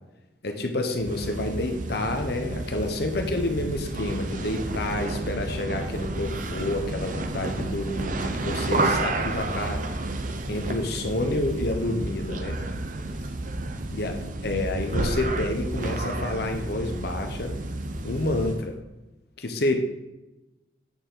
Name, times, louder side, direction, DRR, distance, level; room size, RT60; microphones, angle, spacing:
voice 1, 0.4-9.8 10.5-12.6 13.9-14.1 14.4-17.5 18.0-18.8 19.4-19.7, left 2 dB, 55° left, 4 dB, 1.0 m, -29 dB
sound 1, 0.9-18.7, right 2 dB, 45° right, 0.7 m, -31 dB
8.9 x 6.8 x 3.9 m, 1.0 s
head